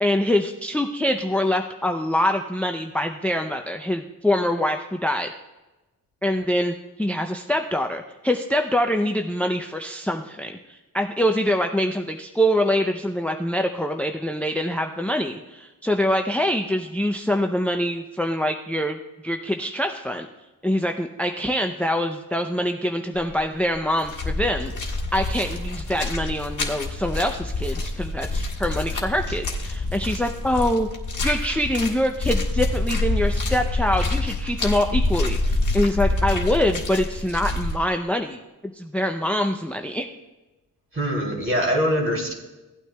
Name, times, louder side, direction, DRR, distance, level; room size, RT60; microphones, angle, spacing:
voice 1, 0.0-5.3 6.2-19.0 19.2-20.3 20.6-24.7 25.1-30.9 31.2-38.4 38.7-40.1, left 1 dB, 5° left, 5 dB, 0.5 m, -24 dB
sound 1, 23.2-23.5 23.7-37.8, left 2 dB, 55° left, 1.5 m, -26 dB
voice 2, 40.9-42.3, equal, 35° right, -1 dB, 2.8 m, -23 dB
16.5 x 9.0 x 2.2 m, 1.1 s
cardioid pair, 80°, 35 cm